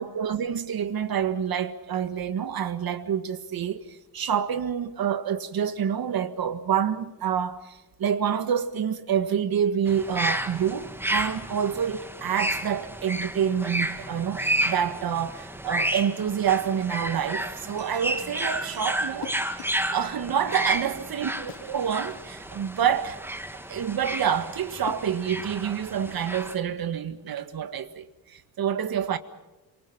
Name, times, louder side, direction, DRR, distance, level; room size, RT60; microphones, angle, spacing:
voice 1, 0.0-19.4 19.9-23.2 23.7-29.2, right 8 dB, 60° right, 1.7 m, -27 dB
sound 1, 9.9-26.5, right 1 dB, 5° right, 1.5 m, -32 dB
sound 2, 17.8-20.7, right 3 dB, 85° right, 4.5 m, -52 dB
sound 3, 19.2-19.9 21.5-22.3 24.6-25.7, left 12 dB, 80° left, 1.4 m, -44 dB
27.5 x 24.5 x 5.7 m
cardioid pair, 135°, 41 cm